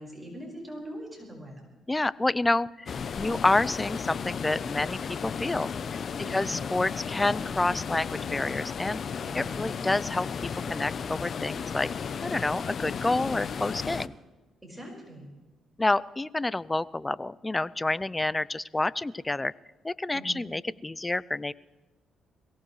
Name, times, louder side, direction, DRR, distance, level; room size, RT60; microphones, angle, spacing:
voice 1, 0.0-1.7 6.2-6.7 9.2-9.6 14.6-15.3 20.1-20.4, equal, 10° right, -2 dB, 4.9 m, -42 dB
voice 2, 1.9-5.7 6.3-9.0 9.3-11.9 12.2-14.1 15.8-19.5 19.8-21.5, left 2 dB, 15° left, 20 dB, 0.4 m, -28 dB
sound 1, 2.9-14.1, left 6 dB, 50° left, 0.6 m, -34 dB
22.5 x 17.5 x 3.2 m, 1.2 s
cardioid pair, 90°, 0 cm